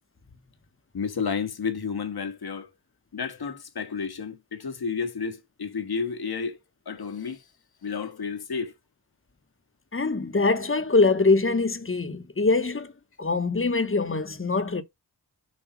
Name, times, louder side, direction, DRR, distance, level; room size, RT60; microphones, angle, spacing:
voice 1, 0.9-2.7 3.1-6.6 6.9-7.4 7.8-8.7, left 5 dB, 60° left, 1.5 m, -31 dB
voice 2, 9.9-12.9 13.2-14.8, left 3 dB, 30° left, 1.2 m, -23 dB
7.3 x 2.7 x 5.8 m
cardioid pair, 50°, 42 cm